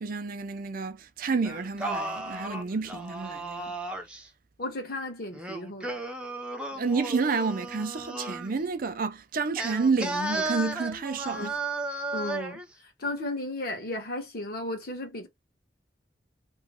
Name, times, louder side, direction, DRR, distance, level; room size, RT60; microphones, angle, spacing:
voice 1, 0.0-3.7 6.7-11.6, right 4 dB, 50° right, 0.5 m, -30 dB
Singing, 1.4-4.3 5.3-8.5 9.6-12.7, right 2 dB, 5° right, 0.5 m, -34 dB
voice 2, 4.6-5.9 11.3-11.5 12.1-12.6 13.0-15.3, left 1 dB, 55° left, 1.3 m, -34 dB
3.0 x 2.2 x 3.6 m
head